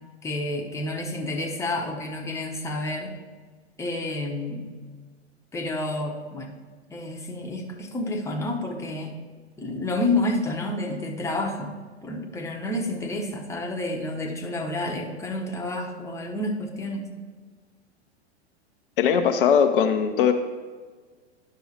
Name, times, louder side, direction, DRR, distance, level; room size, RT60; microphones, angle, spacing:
voice 1, 0.2-3.1 3.8-4.7 5.5-6.6 6.9-9.1 9.6-11.7 12.0-17.1, left 2 dB, 10° left, 1 dB, 0.8 m, -29 dB
voice 2, 19.0-20.3, left 7 dB, 55° left, 6 dB, 0.6 m, -20 dB
11.0 x 6.3 x 2.9 m, 1.5 s
figure-of-eight pair, 90°, 33 cm